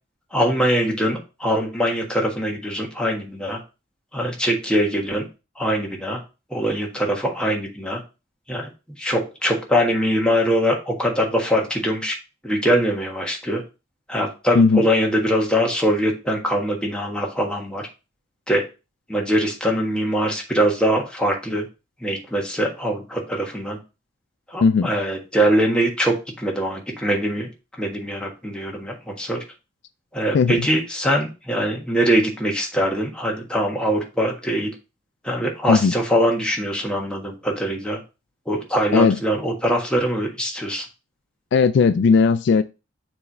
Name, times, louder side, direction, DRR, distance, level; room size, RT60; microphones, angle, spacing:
voice 1, 0.3-3.6 4.1-5.2 5.6-6.2 6.5-8.0 8.5-8.7 9.0-12.1 12.4-13.6 14.1-17.8 18.5-18.6 19.1-21.6 22.0-23.8 24.5-27.5 27.8-29.4 30.1-34.7 35.2-38.0 38.5-40.9, equal, 5° left, 1.4 m, -22 dB
voice 2, 41.5-42.6, left 5 dB, 60° left, 0.3 m, -16 dB
7.0 x 3.2 x 4.1 m
head